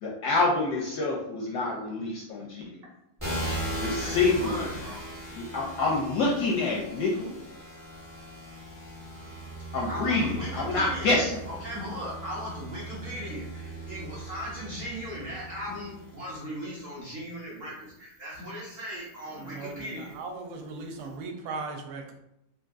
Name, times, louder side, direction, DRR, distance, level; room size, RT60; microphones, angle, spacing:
voice 1, 0.0-2.8 3.8-4.7 5.3-7.3 9.7-11.4, left 3 dB, 75° left, -2 dB, 0.9 m, -27 dB
sound 1, 3.2-16.6 17.3-20.2, right 1 dB, 15° right, 0.4 m, -39 dB
voice 2, 4.0-5.0 9.0-9.2 9.9-11.1 11.5-20.2, equal, 65° right, -6 dB, 0.8 m, -38 dB
voice 3, 19.4-22.1, right 3 dB, 80° right, 3 dB, 1.3 m, -38 dB
3.6 x 2.4 x 2.4 m, 0.82 s
omnidirectional pair, 2.2 m